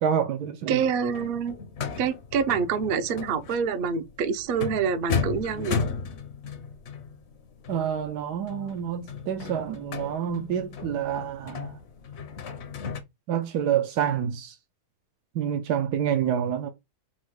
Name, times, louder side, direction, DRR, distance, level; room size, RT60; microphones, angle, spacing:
voice 1, 0.0-0.8 7.7-11.8 13.3-14.5 15.3-16.7, right 9 dB, 85° right, 1.2 m, -27 dB
voice 2, 0.7-1.6 2.0-5.8, right 6 dB, 65° right, 0.5 m, -26 dB
sound 1, 0.8-13.0, left 5 dB, 55° left, 0.8 m, -35 dB
4.4 x 2.1 x 4.5 m
omnidirectional pair, 1.7 m